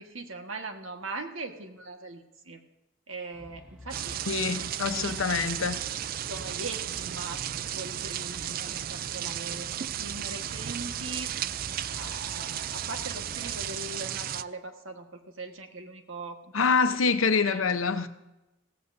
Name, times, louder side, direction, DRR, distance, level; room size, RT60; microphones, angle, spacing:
voice 1, 0.0-2.6 3.1-4.2 4.9-5.5 6.3-7.4 7.7-11.3 11.9-17.0 17.4-17.6, right 3 dB, 80° right, 5 dB, 1.5 m, -41 dB
sound 1, 3.3-13.7, equal, 5° right, 1.2 m, -48 dB
sound 2, 3.9-14.4, right 11 dB, 45° right, 0.3 m, -34 dB
voice 2, 4.3-5.9 16.5-18.1, left 5 dB, 85° left, 9 dB, 0.8 m, -26 dB
16.5 x 14.5 x 2.7 m, 0.97 s
head